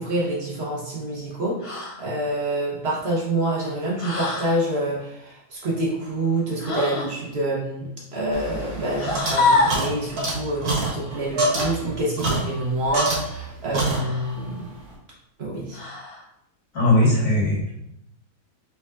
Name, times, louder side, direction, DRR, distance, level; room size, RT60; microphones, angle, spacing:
voice 1, 0.0-1.5 2.0-14.7 15.4-15.8, right 1 dB, 50° right, -5 dB, 1.3 m, -27 dB
sound 1, 1.6-2.0 4.0-4.6 6.6-7.2 8.9-9.9 11.5-11.7 13.8-14.3 15.7-16.2, left 3 dB, 45° left, 0.4 m, -25 dB
sound 2, 8.3-13.5 13.7-14.4, right 2 dB, 80° right, 1.7 m, -27 dB
voice 2, 16.7-17.7, left 1 dB, 65° left, -6 dB, 2.1 m, -19 dB
4.9 x 3.9 x 2.5 m, 0.78 s
omnidirectional pair, 1.5 m